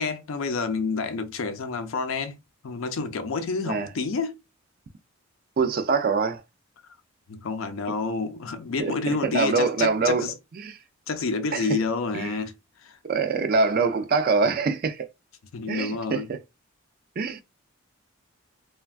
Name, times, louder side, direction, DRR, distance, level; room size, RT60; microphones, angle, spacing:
voice 1, 0.0-2.4 2.6-4.4 7.3-10.3 11.1-12.5 12.8-13.0 15.5-16.3, left 4 dB, 70° left, 0.5 m, -29 dB
voice 2, 5.6-6.4 8.8-8.9 9.2-10.3 10.5-10.7 11.5-11.8 12.1-12.4 13.0-15.0 15.7-16.4 17.2-17.4, right 4 dB, 45° right, 0.3 m, -24 dB
3.2 x 2.2 x 2.3 m
head